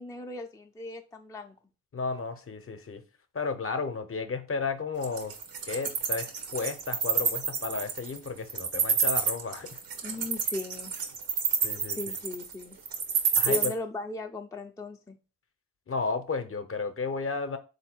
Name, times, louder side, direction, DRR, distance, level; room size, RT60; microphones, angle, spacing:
voice 1, 0.0-1.5 10.0-11.0 12.0-12.8 13.5-15.2, left 2 dB, 10° left, 0.5 m, -37 dB
voice 2, 1.9-3.0 3.3-5.3 5.7-9.8 11.6-12.2 13.3-13.7 15.9-17.6, left 4 dB, 40° left, 0.8 m, -33 dB
Wild animals, 5.0-13.7, right 6 dB, 75° right, 1.0 m, -28 dB
3.6 x 2.7 x 4.3 m
supercardioid pair, 55°, 36 cm